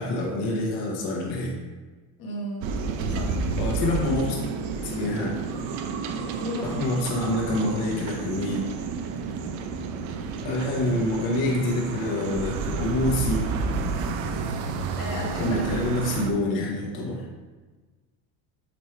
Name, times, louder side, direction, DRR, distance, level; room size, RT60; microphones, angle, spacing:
voice 1, 0.0-1.6 3.5-4.4 4.7-5.3 6.6-8.6 10.4-13.4 15.4-17.2, left 1 dB, 65° left, -3 dB, 1.4 m, -27 dB
voice 2, 2.2-2.7 3.1-3.4 6.4-6.7 15.0-15.6 15.9-16.0, equal, 45° left, 0 dB, 1.3 m, -34 dB
sound 1, 2.6-16.3, right 4 dB, 65° right, 0.7 m, -30 dB
6.7 x 4.5 x 3.2 m, 1.3 s
cardioid pair, 155°, 48 cm